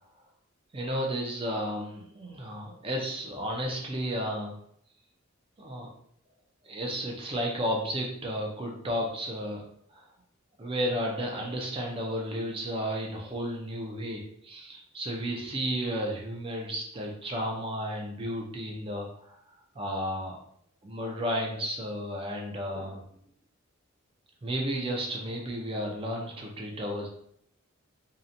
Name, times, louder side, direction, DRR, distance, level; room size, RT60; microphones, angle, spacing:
voice 1, 0.7-4.6 5.6-5.9 6.6-10.1 10.6-19.4 19.8-20.4 20.8-23.0 24.4-27.1, equal, 25° right, 0 dB, 0.4 m, -33 dB
2.7 x 2.1 x 2.5 m, 0.67 s
head